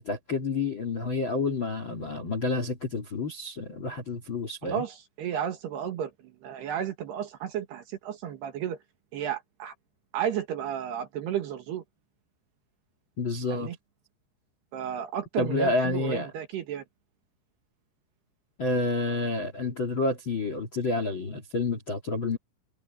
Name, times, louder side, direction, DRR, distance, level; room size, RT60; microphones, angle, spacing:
voice 1, 0.0-4.8 13.2-13.7 15.4-16.3 18.6-22.4, left 3 dB, 40° left, 1.7 m, -29 dB
voice 2, 4.6-8.8 9.1-9.7 10.1-11.8 13.5-13.8 14.7-16.8, right 9 dB, 65° right, 3.4 m, -33 dB
omnidirectional pair, 5.8 m